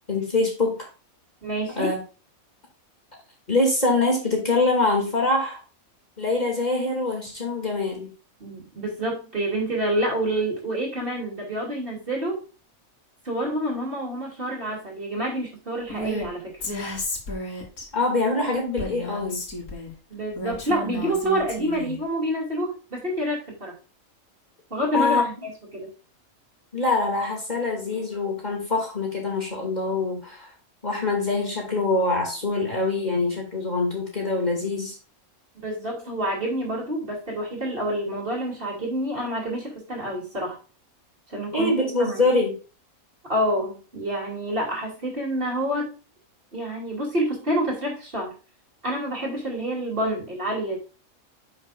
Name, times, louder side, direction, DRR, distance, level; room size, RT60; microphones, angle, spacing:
voice 1, 0.1-0.9 1.8-2.0 3.5-5.6 6.2-8.1 17.9-19.4 24.9-25.2 26.7-30.5 30.8-35.0 41.5-42.5, left 2 dB, 30° left, -1 dB, 2.5 m, -24 dB
voice 2, 1.4-1.9 8.4-12.4 13.2-16.6 20.1-23.7 24.7-25.9 35.5-40.6 41.3-41.7 42.0-42.3 43.3-45.9 46.5-48.3 48.8-50.8, right 1 dB, 40° right, -2 dB, 3.0 m, -28 dB
Female speech woman speaking, 15.9-16.3 16.6-17.9 18.8-19.9 20.4-22.0, left 1 dB, 85° left, 2.5 m, -32 dB
10.0 x 5.9 x 2.5 m, 0.34 s
omnidirectional pair, 1.5 m